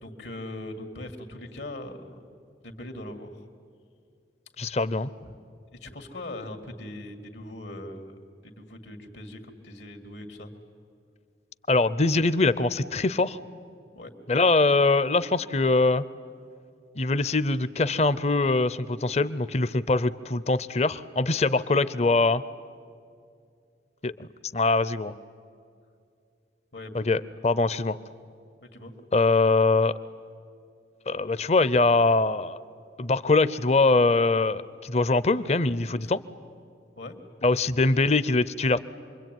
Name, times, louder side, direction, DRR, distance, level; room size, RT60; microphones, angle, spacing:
voice 1, 0.0-2.2 2.6-3.5 5.2-5.4 5.7-10.5 13.9-14.1 26.7-26.9 28.6-28.9 36.0-36.1 36.9-37.2, left 1 dB, 75° left, 6 dB, 2.2 m, -40 dB
voice 2, 4.6-5.1 11.7-13.4 14.3-16.0 17.0-22.4 24.0-24.3 24.5-25.1 26.9-28.0 29.1-29.9 31.1-32.6 33.0-36.2 37.4-38.8, left 3 dB, 35° left, 16 dB, 0.6 m, -23 dB
27.5 x 22.5 x 9.2 m, 2.4 s
head